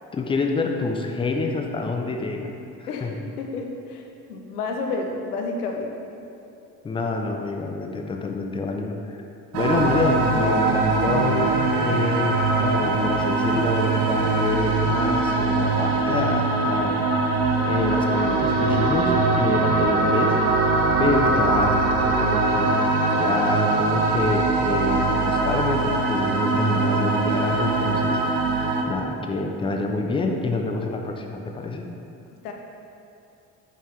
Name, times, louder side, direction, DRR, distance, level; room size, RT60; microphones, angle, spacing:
voice 1, 0.1-2.5 2.8-3.2 6.8-9.0 9.5-17.1 17.7-20.4 21.0-22.8 23.2-28.2 28.9-31.9, left 3 dB, 10° left, 3 dB, 0.4 m, -27 dB
voice 2, 2.9-4.0 4.3-6.0 32.4-32.5, left 3 dB, 75° left, 2 dB, 0.7 m, -30 dB
sound 1, 9.5-28.8, right 3 dB, 70° right, 0.7 m, -22 dB
5.6 x 5.3 x 3.1 m, 2.7 s
figure-of-eight pair, 50°, 46 cm